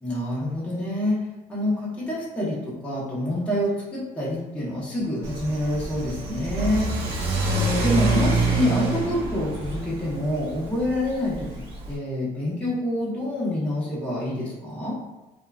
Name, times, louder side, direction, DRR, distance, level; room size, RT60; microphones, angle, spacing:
voice 1, 0.0-1.2 1.5-6.9 7.5-15.0, left 1 dB, 5° left, -8 dB, 0.8 m, -27 dB
Car / Accelerating revving vroom, 5.2-12.0, right 2 dB, 85° right, 0.6 m, -27 dB
2.8 x 2.3 x 2.3 m, 1.1 s
cardioid pair, 110°, 17 cm